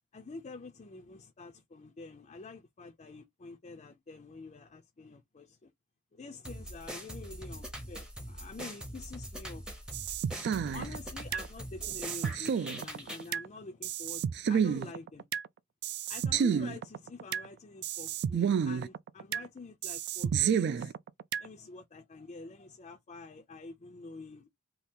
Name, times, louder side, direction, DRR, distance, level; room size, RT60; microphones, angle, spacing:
voice 1, 0.1-5.7 6.1-10.0 10.7-14.2 14.5-15.2 16.1-20.9 21.4-24.5, left 3 dB, 30° left, 0.4 m, -47 dB
sound 1, 6.4-13.3, equal, 5° right, 0.7 m, -43 dB
sound 2, 9.9-11.5 11.8-13.5 13.8-15.5 15.8-17.5 17.8-19.5 19.8-21.5, right 7 dB, 50° right, 0.3 m, -31 dB
2.8 x 2.4 x 3.5 m
head